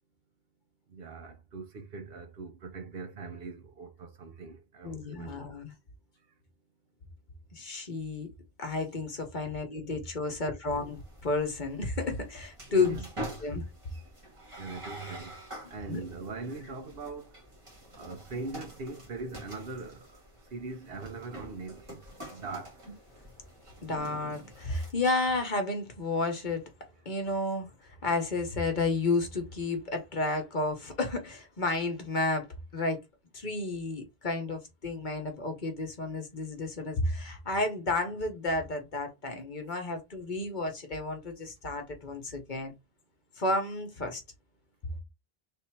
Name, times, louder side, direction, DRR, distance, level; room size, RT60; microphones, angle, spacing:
voice 1, 0.9-5.5 9.4-9.6 10.3-10.4 12.7-13.1 14.6-15.3 15.7-17.3 18.0-20.1 20.5-22.0 22.3-22.7, right 3 dB, 65° right, 1.0 m, -41 dB
voice 2, 4.8-5.7 7.5-8.3 8.6-13.0 13.4-13.6 15.6-16.0 23.8-26.6 27.0-32.5 32.7-33.0 33.3-42.7 43.4-44.2, left 3 dB, 50° left, 1.1 m, -31 dB
sound 1, 10.7-24.9, right 1 dB, 30° right, 1.5 m, -46 dB
3.5 x 2.7 x 4.5 m
omnidirectional pair, 1.1 m